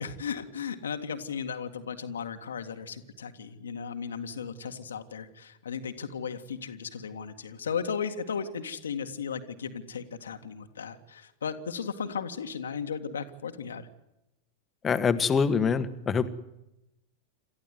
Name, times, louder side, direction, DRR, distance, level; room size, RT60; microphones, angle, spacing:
voice 1, 0.0-13.9, left 6 dB, 70° left, 6 dB, 1.9 m, -35 dB
voice 2, 14.8-16.3, left 5 dB, 20° left, 11 dB, 1.7 m, -25 dB
28.5 x 14.0 x 9.5 m, 0.89 s
figure-of-eight pair, 90°, 0 cm